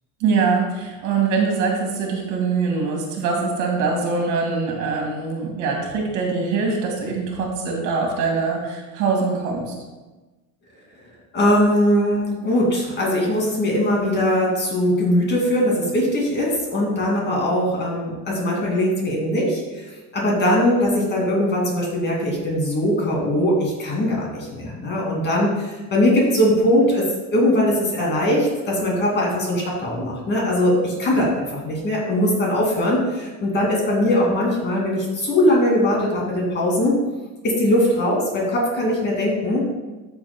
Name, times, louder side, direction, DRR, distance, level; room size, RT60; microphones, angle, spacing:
voice 1, 0.2-9.7, right 4 dB, 60° right, 1 dB, 2.0 m, -23 dB
voice 2, 11.3-19.9 20.1-27.1 27.3-37.0 37.4-39.6, left 1 dB, 30° left, -3 dB, 2.4 m, -20 dB
12.0 x 6.9 x 2.2 m, 1.2 s
cardioid pair, 155°, 35 cm